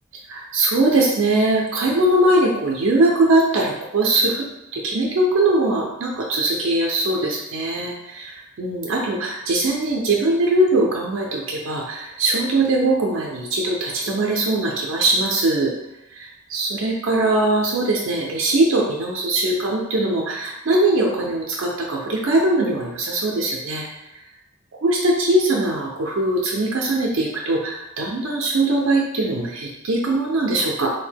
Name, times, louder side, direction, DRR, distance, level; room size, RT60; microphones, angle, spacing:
voice 1, 0.3-4.5 4.7-15.7 16.1-23.9 24.8-30.9, right 2 dB, 70° right, -2 dB, 0.4 m, -21 dB
2.6 x 2.1 x 3.3 m, 0.91 s
head